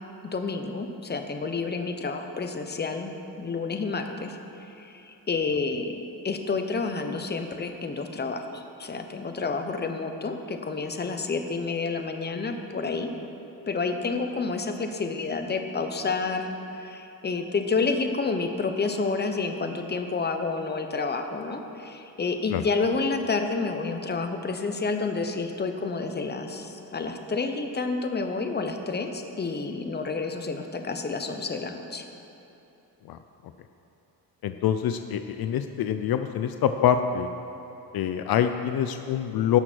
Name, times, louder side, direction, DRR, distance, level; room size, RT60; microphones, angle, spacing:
voice 1, 0.3-4.4 4.8-13.1 13.7-32.0, left 4 dB, 25° left, 5 dB, 0.9 m, -29 dB
voice 2, 34.4-37.3 37.9-39.6, left 9 dB, 65° left, 8 dB, 0.5 m, -25 dB
17.5 x 6.2 x 4.5 m, 2.9 s
cardioid pair, 105°, 39 cm